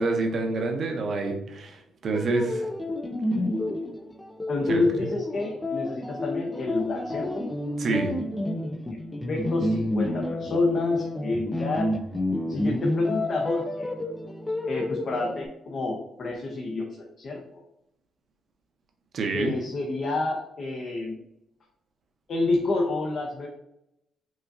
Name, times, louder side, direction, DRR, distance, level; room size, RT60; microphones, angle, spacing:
voice 1, 0.0-2.7 4.7-4.8 7.8-8.1 19.1-19.5, right 3 dB, 55° right, 3 dB, 0.7 m, -27 dB
sound 1, 2.1-15.5, left 1 dB, 15° left, 0.4 m, -30 dB
voice 2, 4.5-7.5 8.9-9.0 9.3-11.9 12.5-13.9 14.6-16.9 17.2-17.6 19.3-21.2 22.3-23.5, left 2 dB, 50° left, 0 dB, 0.6 m, -28 dB
4.9 x 2.3 x 2.6 m, 0.83 s
cardioid pair, 90°, 0 cm